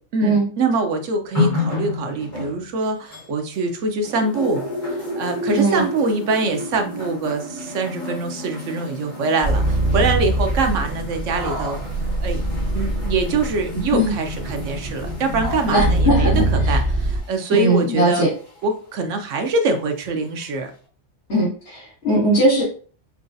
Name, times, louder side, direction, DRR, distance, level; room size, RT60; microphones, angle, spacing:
voice 1, 0.1-4.6 5.0-11.8 12.2-12.4 12.7-18.3 18.6-20.7, right 3 dB, 85° right, 5 dB, 1.1 m, -24 dB
sound 1, 1.3-3.7 4.0-18.8 19.6-19.7, left 3 dB, 40° left, 1.5 m, -31 dB
sound 2, 9.4-17.2, right 1 dB, 55° right, 1.2 m, -23 dB
voice 2, 15.7-16.8 17.5-18.3 21.3-22.6, right 1 dB, 65° left, -9 dB, 1.9 m, -19 dB
5.8 x 2.3 x 2.6 m, 0.40 s
omnidirectional pair, 1.3 m